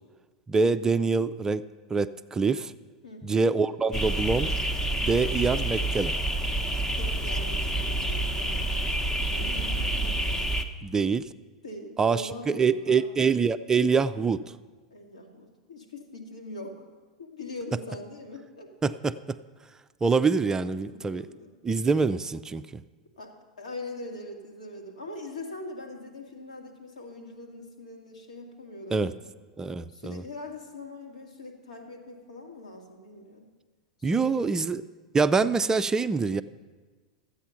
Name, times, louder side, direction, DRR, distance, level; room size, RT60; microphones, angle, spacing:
voice 1, 0.5-1.6 1.9-2.7 3.2-4.5 5.0-6.1 10.8-11.3 12.0-14.4 18.8-19.4 20.0-21.3 21.6-22.8 28.9-29.1 29.6-30.2 34.0-34.8 35.1-36.4, right 4 dB, 15° right, 12 dB, 0.4 m, -25 dB
voice 2, 3.0-3.4 6.9-8.9 9.3-10.4 11.6-13.0 14.9-16.9 17.2-18.7 20.8-21.5 23.2-29.3 29.9-33.5 34.0-34.7, left 2 dB, 80° left, 1 dB, 2.1 m, -42 dB
sound 1, 3.9-10.6, right 1 dB, 15° left, 0.9 m, -28 dB
13.5 x 8.3 x 5.8 m, 1.4 s
figure-of-eight pair, 90°, 4 cm